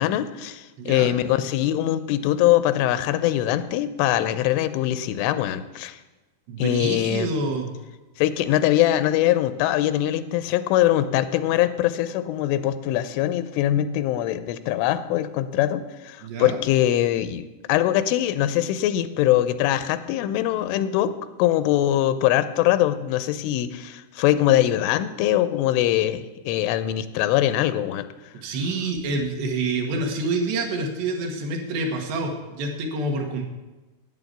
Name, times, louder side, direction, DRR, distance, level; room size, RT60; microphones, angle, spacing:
voice 1, 0.0-6.0 6.6-7.3 8.2-21.1 21.4-28.1, left 13 dB, 90° left, 12 dB, 3.1 m, -22 dB
voice 2, 0.8-1.1 6.5-7.7 16.2-16.6 28.4-33.4, right 3 dB, 70° right, 2 dB, 3.2 m, -27 dB
9.3 x 8.8 x 8.1 m, 1.1 s
omnidirectional pair, 5.5 m